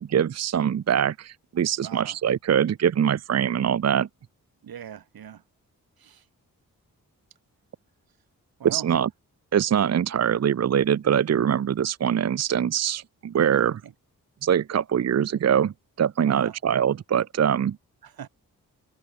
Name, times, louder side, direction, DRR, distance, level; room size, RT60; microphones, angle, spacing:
voice 1, 0.0-4.1 8.6-9.1 9.5-13.8 14.4-17.8, right 8 dB, 45° right, 0.6 m, -23 dB
voice 2, 1.8-2.2 4.6-5.4 6.0-6.2 8.6-8.9 13.6-13.9 16.3-16.5 18.0-18.3, right 9 dB, 80° right, 2.0 m, -41 dB
cardioid pair, 55°, 36 cm